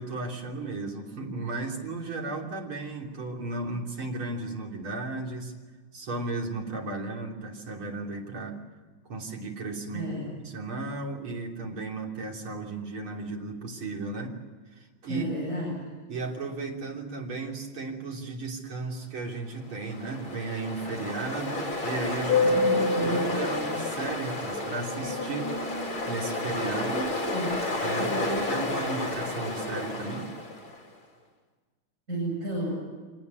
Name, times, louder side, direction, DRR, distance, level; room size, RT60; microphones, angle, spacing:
voice 1, 0.0-5.5 5.9-8.6 9.0-10.1 10.5-14.4 14.7-15.3 16.1-25.5 26.1-26.9 27.8-30.3, right 3 dB, 80° right, 0 dB, 4.2 m, -35 dB
voice 2, 9.9-10.4 15.1-15.8 22.4-23.4 26.8-27.7 28.0-28.8 32.1-32.7, right 1 dB, 35° right, -4 dB, 8.3 m, -33 dB
Ocean, 19.7-30.8, left 2 dB, 70° left, 4.1 m, -29 dB
25.5 x 19.5 x 9.6 m, 1.4 s
omnidirectional pair, 2.3 m